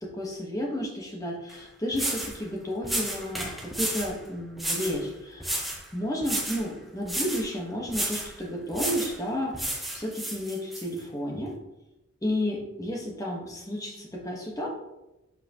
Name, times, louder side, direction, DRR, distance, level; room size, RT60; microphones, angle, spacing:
voice 1, 0.0-5.6 5.9-11.5 12.2-14.7, equal, 15° left, -1 dB, 1.2 m, -32 dB
sound 1, 1.5-1.6 1.9-2.4 2.8-4.1 4.6-5.0 5.4-5.8 6.2-6.7 7.0-7.5 7.9-8.3 8.7-9.2 9.5-10.8, right 1 dB, ahead, 0.9 m, -31 dB
7.7 x 5.9 x 2.9 m, 0.95 s
head